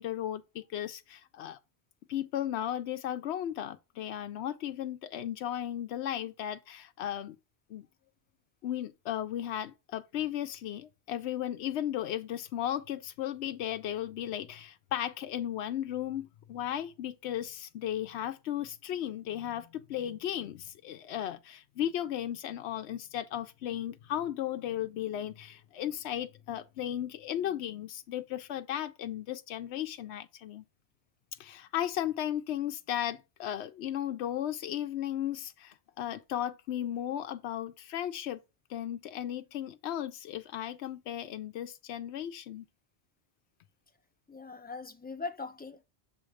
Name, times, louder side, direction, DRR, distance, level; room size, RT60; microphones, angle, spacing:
voice 1, 0.0-1.6 2.1-7.4 7.7-7.9 8.6-30.6 31.4-38.4 38.7-42.6, left 11 dB, 80° left, 0.9 m, -35 dB
voice 2, 44.3-45.8, left 4 dB, 15° left, 0.3 m, -40 dB
7.0 x 3.1 x 4.8 m
omnidirectional pair, 1.1 m